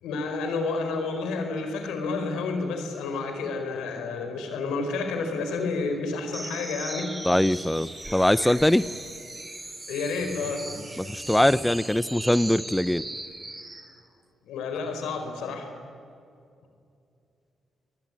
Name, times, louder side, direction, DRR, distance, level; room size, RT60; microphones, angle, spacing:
voice 1, 0.0-7.1 9.9-10.6 14.5-15.7, left 4 dB, 90° left, 6 dB, 4.4 m, -30 dB
sound 1, 6.3-13.9, right 2 dB, 20° right, 5.0 m, -38 dB
voice 2, 7.2-8.9 11.0-13.0, left 1 dB, 10° left, 17 dB, 0.7 m, -22 dB
27.5 x 20.5 x 9.8 m, 2.5 s
supercardioid pair, 60°, 0 cm